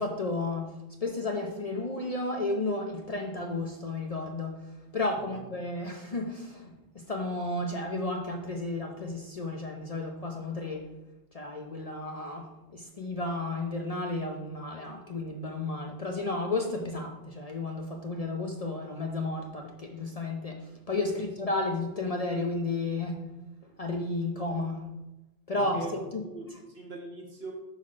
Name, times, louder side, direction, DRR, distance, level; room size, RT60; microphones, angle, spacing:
voice 1, 0.0-10.9 11.3-23.2 23.8-24.9 25.5-25.8 26.1-26.2, left 2 dB, 40° left, 1 dB, 0.7 m, -33 dB
voice 2, 25.5-25.9 26.2-27.5, right 3 dB, 60° right, -1 dB, 1.8 m, -42 dB
5.8 x 4.0 x 6.2 m, 0.99 s
omnidirectional pair, 1.2 m